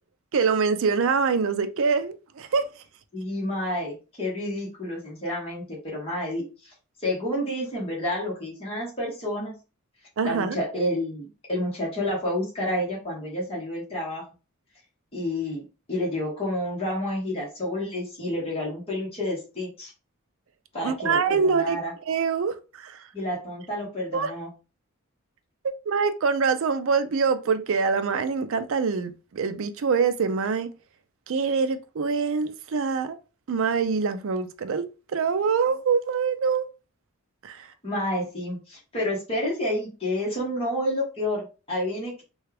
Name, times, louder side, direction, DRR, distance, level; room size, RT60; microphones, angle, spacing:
voice 1, 0.3-2.7 10.2-10.6 20.8-21.8 22.1-23.0 24.1-24.3 25.6-30.7 31.3-33.2 33.5-34.9 35.1-36.7 37.4-37.7, right 5 dB, 65° right, 0.4 m, -24 dB
voice 2, 3.1-6.7 7.0-9.5 10.2-14.2 15.1-19.9 20.7-21.9 23.1-24.5 37.8-42.2, left 1 dB, 25° left, 1.4 m, -29 dB
3.3 x 2.3 x 3.3 m
head